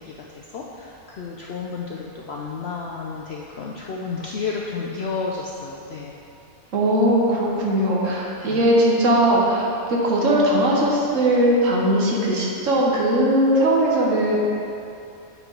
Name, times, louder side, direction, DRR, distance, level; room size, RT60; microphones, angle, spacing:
voice 1, 0.0-6.1 8.4-8.6, left 4 dB, 65° left, -2 dB, 0.6 m, -32 dB
voice 2, 6.7-14.4, right 1 dB, 60° right, -3 dB, 1.3 m, -19 dB
8.1 x 4.4 x 3.8 m, 2.7 s
omnidirectional pair, 1.5 m